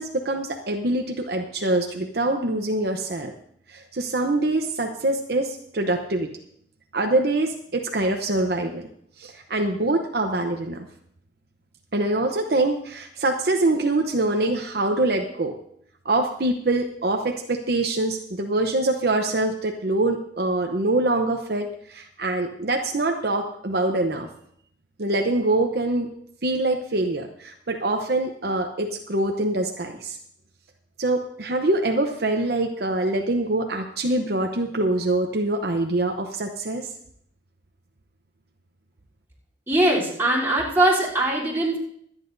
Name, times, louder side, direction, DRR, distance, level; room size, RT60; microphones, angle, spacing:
voice 1, 0.0-3.3 3.7-6.3 6.9-8.9 9.2-10.8 11.9-15.5 16.0-24.3 25.0-26.1 26.4-30.2 31.0-36.9, right 2 dB, 55° right, 3 dB, 0.8 m, -24 dB
voice 2, 39.7-41.8, right 1 dB, 15° right, -7 dB, 3.5 m, -21 dB
24.0 x 9.9 x 2.7 m, 0.68 s
head